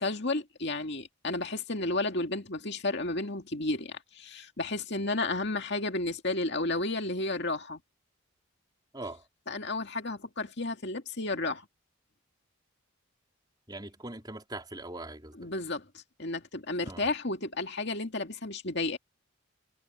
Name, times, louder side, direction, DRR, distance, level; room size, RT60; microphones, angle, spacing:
voice 1, 0.0-7.8 9.5-11.7 15.4-19.0, left 2 dB, 50° left, 2.3 m, -32 dB
voice 2, 8.9-9.2 13.7-15.5 16.8-17.1, right 2 dB, 20° right, 4.3 m, -41 dB
head